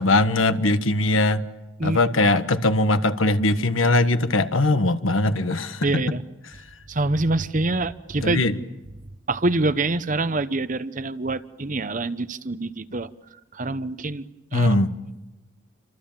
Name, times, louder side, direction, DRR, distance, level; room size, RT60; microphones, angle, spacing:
voice 1, 0.0-1.4 1.8-6.0 8.2-8.6 14.5-14.9, left 2 dB, 85° left, 10 dB, 1.4 m, -20 dB
voice 2, 5.8-6.2 6.9-8.4 9.3-13.1 13.5-14.3 14.5-14.7, right 2 dB, 40° right, 14 dB, 0.8 m, -25 dB
29.5 x 25.5 x 7.4 m, 1.1 s
head